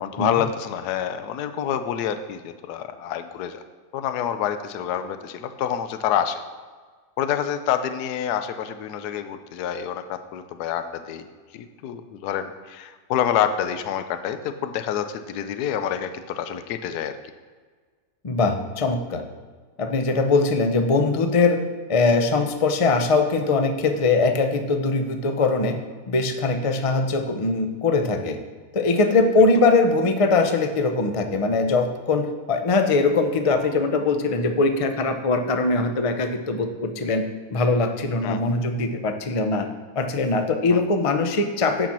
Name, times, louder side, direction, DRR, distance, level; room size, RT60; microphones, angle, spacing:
voice 1, 0.0-3.6 3.9-6.4 7.2-11.2 11.5-17.1 38.2-38.6 40.7-40.8, left 9 dB, 75° left, 9 dB, 1.1 m, -27 dB
voice 2, 18.2-19.2 19.8-21.6 21.9-25.8 26.1-28.4 28.7-37.2 37.5-39.7 39.9-41.9, left 3 dB, 60° left, 6 dB, 0.3 m, -21 dB
8.8 x 5.0 x 5.9 m, 1.5 s
omnidirectional pair, 1.8 m